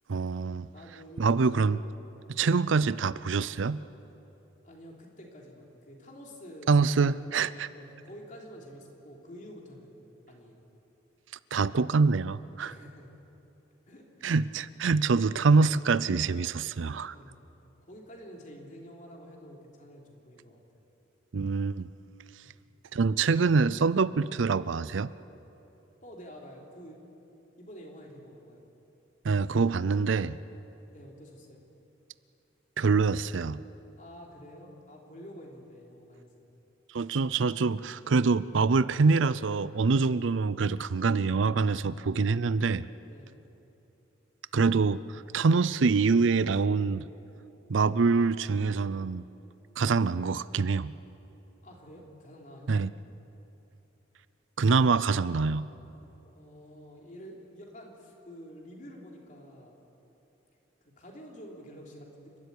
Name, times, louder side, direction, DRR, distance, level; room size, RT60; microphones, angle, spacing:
voice 1, 0.1-0.7 1.2-1.8 2.3-3.8 6.7-7.7 11.5-12.7 14.2-17.1 21.3-21.9 22.9-25.1 29.2-30.4 32.8-33.6 36.9-42.8 44.5-47.1 47.7-49.2 49.8-50.9 52.7-52.9 54.6-55.7, right 4 dB, 80° right, 17 dB, 0.5 m, -25 dB
voice 2, 0.7-1.4 2.1-2.3 4.6-6.7 7.0-10.0 10.3-10.6 12.6-13.1 13.9-14.3 17.1-17.4 17.8-20.6 22.4-22.6 26.0-27.0 27.6-28.6 30.9-31.6 34.0-36.5 43.1-43.4 51.6-52.7 56.2-59.8 61.0-62.4, equal, 40° left, 0 dB, 3.4 m, -48 dB
29.0 x 13.0 x 9.7 m, 3.0 s
head